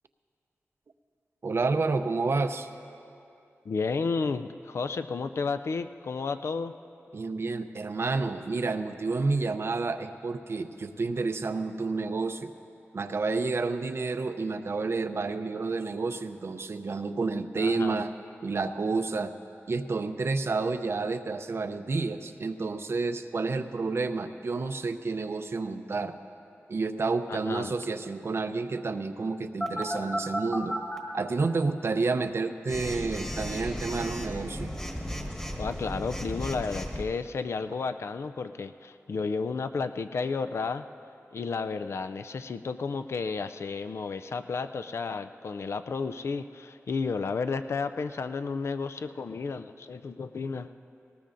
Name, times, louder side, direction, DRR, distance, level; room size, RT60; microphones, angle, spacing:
voice 1, 1.4-2.7 7.1-12.5 12.9-18.1 18.4-19.3 19.7-26.1 26.7-30.8 31.1-34.7, right 3 dB, 60° right, 9 dB, 0.5 m, -30 dB
voice 2, 3.7-6.8 17.6-18.0 27.3-27.7 35.6-40.8 41.3-50.7, left 4 dB, 65° left, 10 dB, 0.4 m, -32 dB
Telephone, 29.6-31.0 32.7-37.0, equal, 15° left, 1.4 m, -34 dB
19.0 x 19.0 x 2.6 m, 2.7 s
wide cardioid pair, 100°, 5 cm